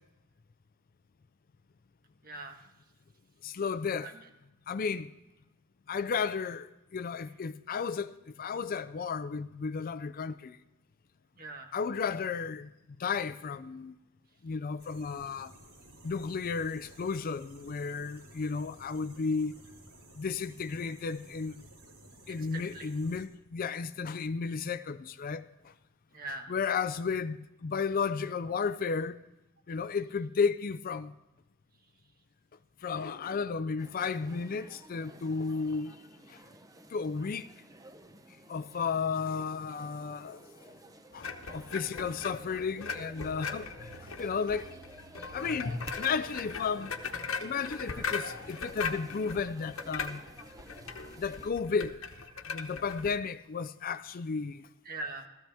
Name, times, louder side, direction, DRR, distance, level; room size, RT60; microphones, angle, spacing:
voice 1, 2.2-2.7 4.0-4.1 11.4-11.7 22.3-22.9 26.1-26.5 52.3-52.4 54.8-55.3, right 2 dB, 45° right, 1.5 m, -42 dB
voice 2, 3.4-4.1 4.7-5.1 5.9-10.6 11.7-12.7 13.0-13.9 14.4-15.5 16.0-19.6 20.2-21.6 22.3-25.7 26.3-29.2 29.7-31.1 32.8-36.0 36.3-36.4 36.9-37.5 38.5-40.4 41.1-44.7 45.3-47.0 47.4-50.2 51.2-52.0 52.5-54.7, left 5 dB, 40° left, 0.4 m, -33 dB
sound 1, 14.8-23.3, right 1 dB, 80° right, 3.4 m, -55 dB
sound 2, 33.8-51.5, right 1 dB, 15° right, 0.6 m, -52 dB
sound 3, 41.2-53.1, left 5 dB, 70° left, 1.0 m, -39 dB
16.0 x 14.0 x 3.4 m
head